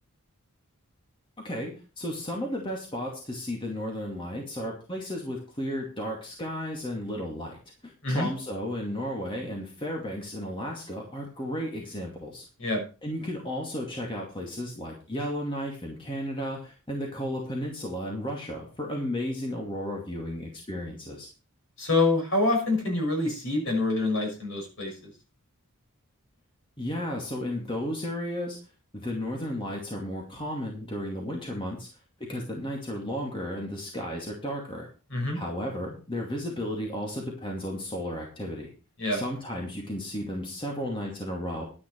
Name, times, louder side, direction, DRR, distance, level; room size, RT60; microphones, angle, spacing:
voice 1, 1.4-7.6 7.8-12.4 13.0-21.3 26.8-28.6 28.9-31.9 32.2-34.9 35.3-38.7 39.1-41.7, equal, 25° left, 0 dB, 2.4 m, -33 dB
voice 2, 21.8-24.9 35.1-35.4 39.0-39.2, left 2 dB, 60° left, 2 dB, 6.1 m, -26 dB
11.5 x 9.8 x 4.6 m, 0.34 s
head